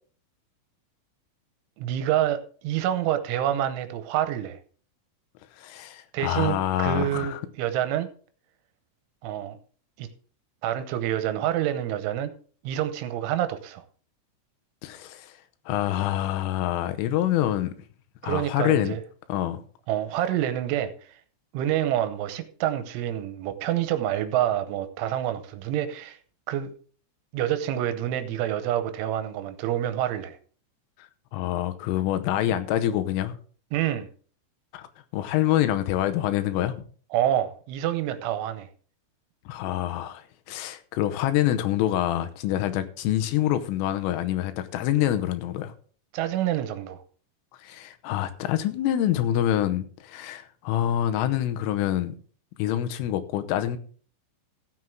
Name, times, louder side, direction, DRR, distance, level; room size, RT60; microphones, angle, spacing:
voice 1, 1.8-4.6 6.1-8.1 9.2-9.6 10.0-10.1 10.6-12.3 12.6-13.8 18.2-19.0 19.9-20.9 21.5-26.2 26.5-26.7 27.3-30.4 33.7-34.1 37.1-38.7 46.1-47.0, right 11 dB, 80° right, 3.1 m, -27 dB
voice 2, 5.6-7.4 14.8-15.4 15.7-17.7 18.2-19.0 19.3-19.6 31.0-33.4 34.7-36.7 39.5-45.7 47.6-52.1 52.6-53.8, left 12 dB, 90° left, 3.4 m, -26 dB
15.5 x 7.7 x 3.6 m
omnidirectional pair, 5.7 m